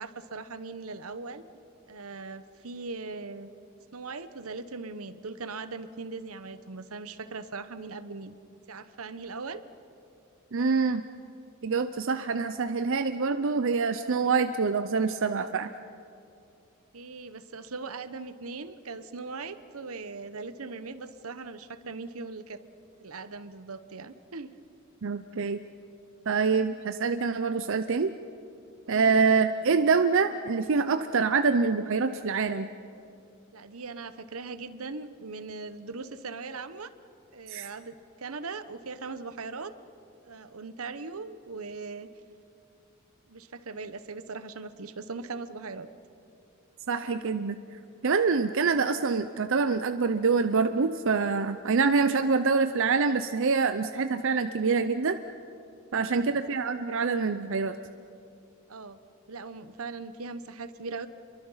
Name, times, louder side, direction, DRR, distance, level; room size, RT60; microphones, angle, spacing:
voice 1, 0.0-1.5 1.9-3.5 3.9-8.3 8.7-9.6 16.9-22.6 23.0-24.5 29.1-29.3 33.5-36.9 37.3-39.7 40.2-42.1 43.3-45.9 55.9-56.6 58.7-59.0 59.3-61.1, right 4 dB, 85° right, 12 dB, 1.0 m, -40 dB
voice 2, 10.5-11.0 11.6-15.7 25.0-25.6 26.3-28.1 28.9-32.7 37.5-37.7 46.9-47.6 48.0-55.2 55.9-57.8, right 4 dB, 65° right, 10 dB, 0.6 m, -25 dB
28.5 x 23.0 x 5.7 m, 2.7 s
head